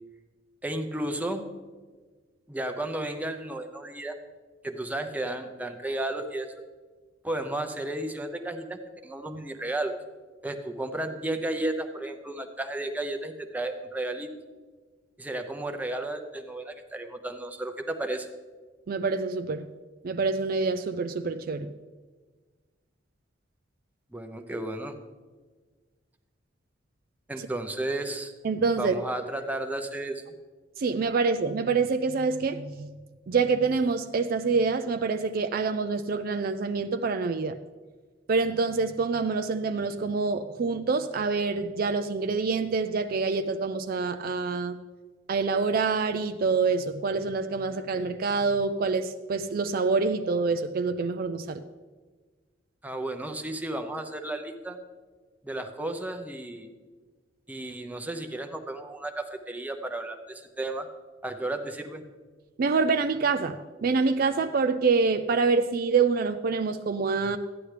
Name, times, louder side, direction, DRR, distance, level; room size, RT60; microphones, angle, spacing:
voice 1, 0.6-1.4 2.5-4.2 4.6-6.5 7.2-9.9 10.4-14.3 15.2-18.3 24.1-25.0 27.3-28.3 28.8-30.3 52.8-54.8 55.4-56.7 57.5-60.9 61.2-62.0, right 1 dB, 10° right, 5 dB, 0.7 m, -33 dB
voice 2, 18.9-19.7 20.0-21.7 28.4-28.9 30.8-33.0 33.3-37.6 38.3-44.8 45.3-51.6 62.6-67.4, right 4 dB, 50° right, 9 dB, 0.4 m, -26 dB
13.0 x 10.0 x 3.3 m, 1.4 s
head